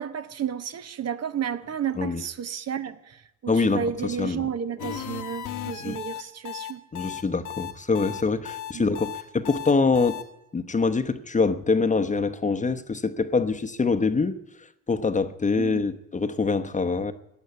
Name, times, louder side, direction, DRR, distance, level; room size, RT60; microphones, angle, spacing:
voice 1, 0.0-6.8 8.7-8.9 15.6-15.8, right 8 dB, 55° right, 1.1 m, -32 dB
voice 2, 3.5-3.8 4.2-4.4 5.8-6.0 6.9-10.2 10.5-14.4 14.9-17.1, left 4 dB, 25° left, 0.9 m, -24 dB
sound 1, 4.8-10.2, left 10 dB, 90° left, 1.6 m, -35 dB
15.5 x 9.2 x 9.6 m
cardioid pair, 90°, 30 cm